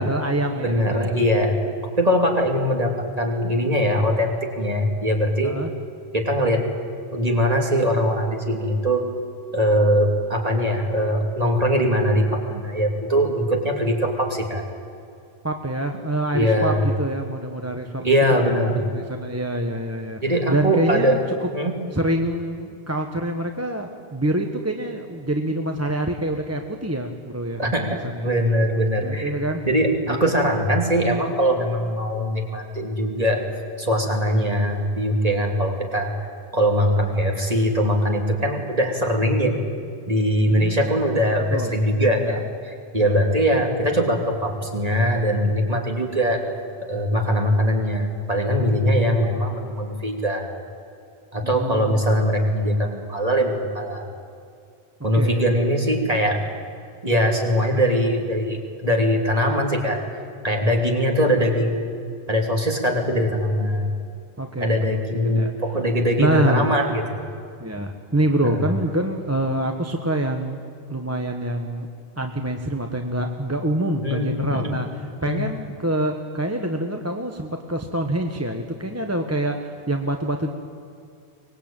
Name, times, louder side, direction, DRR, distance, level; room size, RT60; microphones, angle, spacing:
voice 1, 0.0-1.2 5.4-5.7 15.4-20.2 20.5-21.5 21.9-28.3 29.0-29.7 30.0-30.3 40.5-40.8 41.5-41.7 42.2-42.4 43.0-43.2 51.4-52.0 55.1-55.6 64.4-65.5 66.2-66.7 67.6-70.6 70.9-71.9 72.2-74.9 75.2-80.5, right 1 dB, 15° right, 4 dB, 1.2 m, -26 dB
voice 2, 0.6-1.6 2.0-5.6 6.1-6.7 7.1-9.1 9.5-14.6 16.3-16.9 18.0-18.9 20.2-21.2 21.5-21.7 27.6-29.3 29.7-33.5 33.8-36.1 36.5-39.6 40.1-46.5 46.8-50.5 51.3-54.1 55.0-56.4 57.0-60.0 60.4-61.9 62.3-63.9 64.6-67.2 68.4-68.6 74.0-74.8 75.2-75.4, equal, 40° right, 1 dB, 3.1 m, -21 dB
24.0 x 20.0 x 9.0 m, 2.4 s
omnidirectional pair, 1.0 m